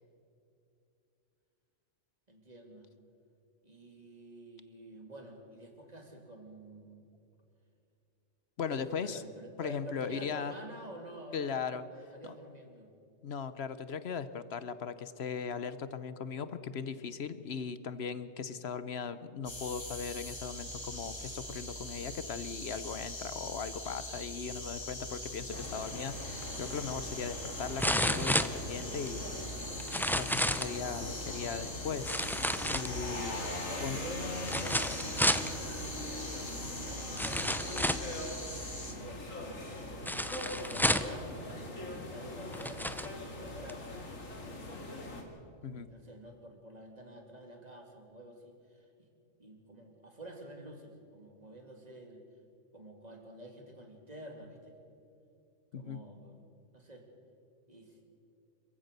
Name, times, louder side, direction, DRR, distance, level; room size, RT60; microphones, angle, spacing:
voice 1, 2.3-2.9 3.6-7.1 8.7-12.9 33.6-38.1 38.7-41.4 41.8-43.8 44.4-44.8 45.0-45.2 45.6-49.1 49.4-52.2 52.7-54.8 55.7-57.1 57.7-58.0, right 1 dB, 30° right, 3 dB, 2.8 m, -49 dB
voice 2, 8.6-9.2 9.6-10.5 11.3-11.8 12.2-12.4 13.2-29.5 30.1-32.4 32.7-33.4 33.8-34.0 45.6-45.9 55.7-56.0, left 6 dB, 60° left, 13 dB, 1.0 m, -38 dB
sound 1, 19.4-38.9, equal, 20° left, 2.3 m, -42 dB
sound 2, 25.5-45.2, left 2 dB, 90° left, 2.8 m, -42 dB
sound 3, 26.4-26.5 27.8-29.1 29.8-30.8 32.0-33.2 34.4-35.5 36.5-36.6 37.2-38.1 40.1-41.2 42.0-42.1 42.5-43.1 43.7-43.8, equal, 5° left, 0.4 m, -31 dB
26.5 x 15.0 x 6.7 m, 2.6 s
omnidirectional pair, 1.3 m